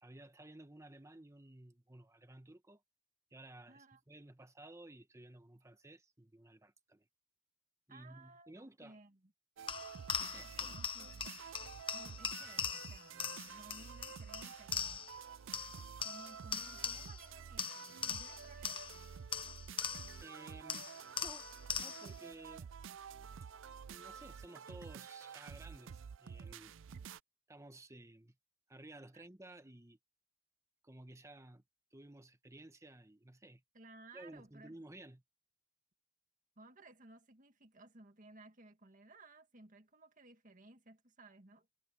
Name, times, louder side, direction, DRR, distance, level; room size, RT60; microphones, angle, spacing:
voice 1, 0.0-2.8 3.3-7.1 7.9-9.0 10.2-10.8 20.2-20.9 21.2-21.5 21.8-22.7 23.9-26.7 27.5-28.3 28.7-30.0 30.8-31.6 31.9-33.6 34.1-35.2, right 1 dB, 15° right, 1.2 m, -55 dB
voice 2, 3.7-4.0 7.9-9.3 10.4-11.4 11.9-15.1 16.0-18.9 29.1-29.2 33.7-34.8 36.6-41.7, right 2 dB, 40° right, 2.0 m, -58 dB
sound 1, 9.6-27.2, right 7 dB, 75° right, 0.4 m, -50 dB
sound 2, 9.7-15.2 15.5-17.3 17.6-20.3 20.7-22.2, left 7 dB, 25° left, 0.8 m, -41 dB
head